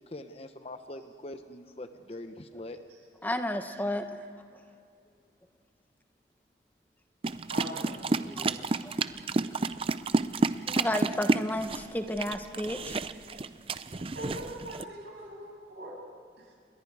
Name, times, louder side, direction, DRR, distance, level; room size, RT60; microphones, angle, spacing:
voice 1, 0.1-2.8, left 1 dB, 35° left, 8 dB, 0.9 m, -43 dB
voice 2, 3.2-4.1 8.4-8.5 8.8-8.9 10.7-13.0, left 1 dB, 10° left, 7 dB, 1.0 m, -32 dB
sound 1, 7.2-14.8, right 3 dB, 30° right, 0.5 m, -30 dB
voice 3, 7.5-8.8 10.9-11.0 13.3-13.4 14.1-15.9 16.4-16.5, right 1 dB, 70° right, -3 dB, 7.8 m, -42 dB
28.5 x 21.5 x 4.8 m, 2.4 s
head